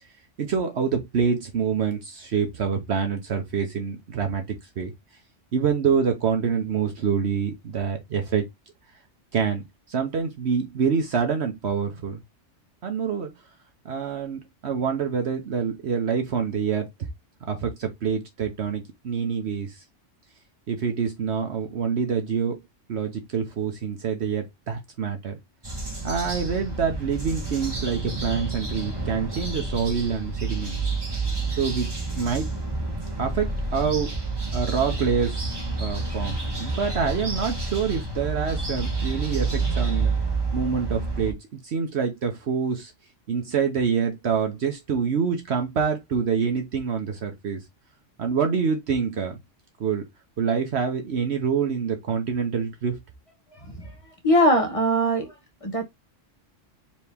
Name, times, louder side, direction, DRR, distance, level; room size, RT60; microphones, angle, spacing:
voice 1, 0.4-4.9 5.5-8.5 9.3-12.2 12.8-13.3 13.8-17.1 17.5-19.8 20.7-22.6 22.9-25.4 26.0-30.8 31.6-32.5 33.2-34.1 34.5-40.1 40.5-41.4 41.6-42.9 43.3-47.6 48.2-49.4 49.8-50.0 50.4-53.0, right 6 dB, 60° right, 1.1 m, -26 dB
sound 1, 25.6-41.3, right 3 dB, 20° right, 1.2 m, -29 dB
voice 2, 54.2-55.3 55.6-55.9, equal, 30° left, 1.1 m, -21 dB
4.4 x 2.9 x 3.3 m
omnidirectional pair, 1.3 m